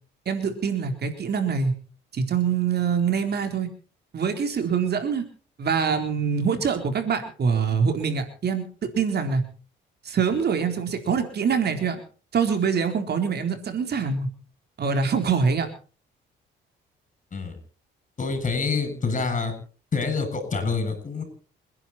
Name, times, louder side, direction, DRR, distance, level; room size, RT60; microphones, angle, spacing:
voice 1, 0.3-1.7 2.1-3.7 4.1-5.2 5.6-9.4 10.0-12.0 12.3-14.3 14.8-15.7, right 6 dB, 55° right, 6 dB, 3.9 m, -24 dB
voice 2, 18.2-19.5 19.9-21.2, left 4 dB, 40° left, 8 dB, 8.0 m, -26 dB
28.5 x 10.5 x 4.3 m, 0.39 s
cardioid pair, 90°, 20 cm